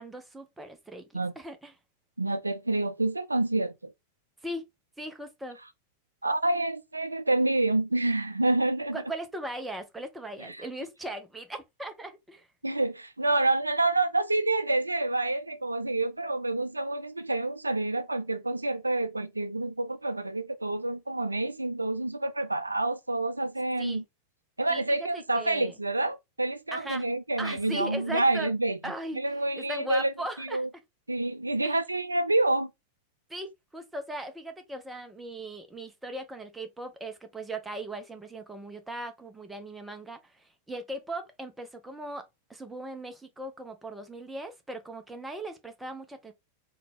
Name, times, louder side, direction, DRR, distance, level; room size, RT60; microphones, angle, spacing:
voice 1, 0.0-1.1 1.4-1.7 4.4-4.6 5.0-5.6 8.9-12.5 23.8-24.0 24.7-25.7 26.7-27.0 27.4-28.5 28.8-29.2 29.6-30.6 31.6-31.7 33.3-42.2 42.5-46.3, right 1 dB, 5° right, 0.7 m, -38 dB
voice 2, 2.2-3.9 6.2-9.0 10.4-10.6 12.6-24.0 24.6-30.7 31.1-32.7, right 2 dB, 85° right, 0.4 m, -28 dB
3.8 x 2.3 x 3.4 m
figure-of-eight pair, 90°, 0 cm